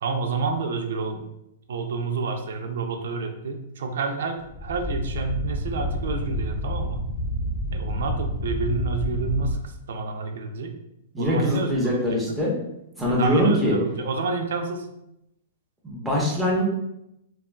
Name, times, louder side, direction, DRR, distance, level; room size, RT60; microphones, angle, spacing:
voice 1, 0.0-1.2 1.7-7.0 7.7-10.7 11.2-12.3 13.2-14.9, right 4 dB, 75° right, 5 dB, 0.4 m, -29 dB
sound 1, 4.4-9.5, equal, 50° left, 0.9 m, -29 dB
voice 2, 11.1-12.5 13.0-13.8 15.8-16.6, left 1 dB, ahead, -5 dB, 0.7 m, -23 dB
3.3 x 2.3 x 2.3 m, 0.84 s
hypercardioid pair, 155°, 0 cm